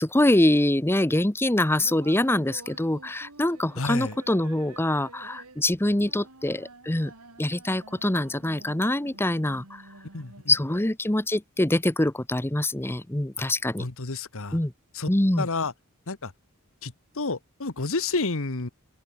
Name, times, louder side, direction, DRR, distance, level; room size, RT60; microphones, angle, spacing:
voice 1, 0.0-7.1 7.4-9.8 10.5-13.9 14.5-14.7 15.1-15.5, left 1 dB, 10° left, 0.9 m, -24 dB
sound 1, 1.8-10.8, right 2 dB, 80° right, 3.7 m, -49 dB
voice 2, 3.8-4.1 10.1-10.3 13.8-14.6 14.9-15.1 15.4-15.7 16.1-16.3 16.8-18.7, left 3 dB, 65° left, 1.5 m, -30 dB
open air
head